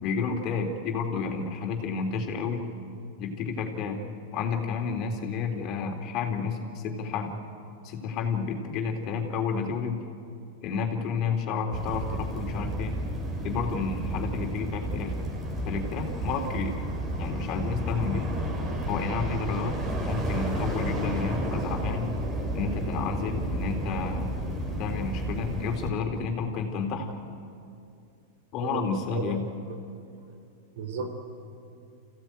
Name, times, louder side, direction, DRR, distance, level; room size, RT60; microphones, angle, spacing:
voice 1, 0.0-2.6 3.2-4.0 4.3-7.4 7.8-10.0 10.6-13.0 13.4-15.2 15.6-16.7 17.1-18.3 18.9-19.8 20.0-22.1 22.5-24.3 24.8-27.1 28.5-29.4, left 5 dB, 45° left, 4 dB, 3.2 m, -30 dB
sound 1, 11.7-25.9, right 1 dB, 25° right, 3.9 m, -31 dB
voice 2, 30.8-31.1, right 5 dB, 70° right, 6 dB, 3.5 m, -33 dB
25.5 x 16.0 x 9.1 m, 2.5 s
hypercardioid pair, 125°, 0 cm